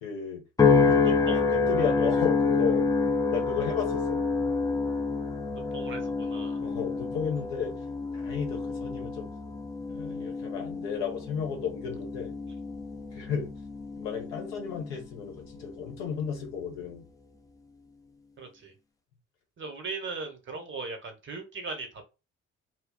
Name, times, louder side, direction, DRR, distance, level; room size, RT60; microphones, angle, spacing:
voice 1, 0.0-0.4 0.9-1.2 1.5-2.9 3.3-4.2 6.5-7.7 8.1-9.3 9.9-12.3 13.1-13.6 14.0-17.0, left 7 dB, 65° left, 0.9 m, -33 dB
sound 1, 0.6-15.1 15.6-16.0, left 4 dB, 10° left, 0.5 m, -28 dB
voice 2, 1.0-1.4 5.5-6.6 18.4-18.7 19.6-22.1, right 4 dB, 35° right, 0.9 m, -38 dB
2.2 x 2.0 x 3.7 m
figure-of-eight pair, 50°, 35 cm